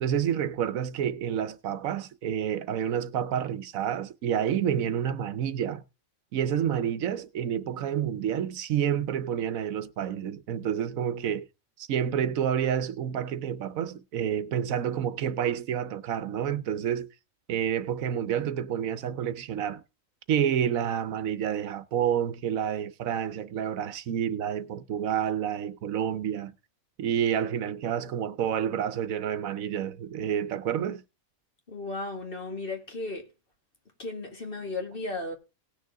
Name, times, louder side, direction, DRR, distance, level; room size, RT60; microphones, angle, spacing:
voice 1, 0.0-5.8 6.3-11.5 11.9-17.1 17.5-19.8 20.3-26.5 27.0-31.0, right 9 dB, 80° right, 1.2 m, -29 dB
voice 2, 31.7-33.3 34.0-35.3, left 2 dB, 40° left, 2.1 m, -35 dB
18.5 x 6.4 x 3.5 m
omnidirectional pair, 1.4 m